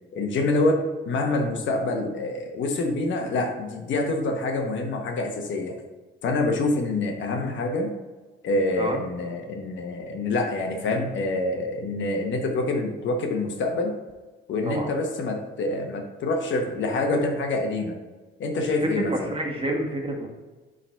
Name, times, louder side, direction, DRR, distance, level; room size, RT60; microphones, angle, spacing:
voice 1, 0.1-5.8 6.2-7.9 8.4-13.9 14.5-17.9 18.4-19.1, left 2 dB, 70° left, 3 dB, 1.2 m, -26 dB
voice 2, 18.8-20.3, right 1 dB, 25° right, 1 dB, 1.7 m, -28 dB
7.1 x 3.9 x 4.5 m, 1.2 s
cardioid pair, 90°, 20 cm